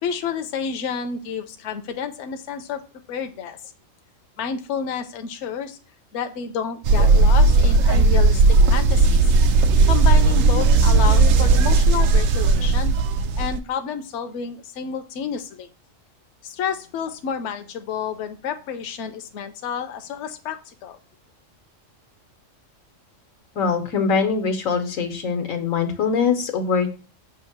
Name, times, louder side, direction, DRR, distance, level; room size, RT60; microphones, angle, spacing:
voice 1, 0.0-2.8 3.1-3.6 4.4-5.8 6.1-8.4 8.7-9.3 9.8-12.9 13.4-15.7 16.4-21.0, left 7 dB, 70° left, 7 dB, 0.9 m, -30 dB
sound 1, 6.8-13.6, right 3 dB, 85° right, 1.0 m, -16 dB
voice 2, 23.5-26.9, left 5 dB, 90° left, 6 dB, 1.4 m, -22 dB
7.2 x 2.8 x 5.8 m, 0.34 s
omnidirectional pair, 1.3 m